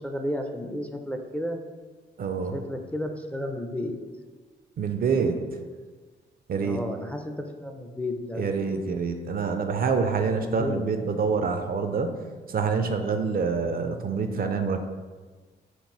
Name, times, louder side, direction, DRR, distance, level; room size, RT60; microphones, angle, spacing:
voice 1, 0.0-1.6 2.5-4.0 6.6-8.7 10.3-11.0, left 1 dB, 5° left, 4 dB, 0.4 m, -33 dB
voice 2, 2.2-2.6 4.8-5.5 6.5-6.8 8.4-12.2 12.5-14.8, right 5 dB, 50° right, 6 dB, 0.4 m, -26 dB
4.4 x 3.2 x 3.0 m, 1.4 s
cardioid pair, 65°, 19 cm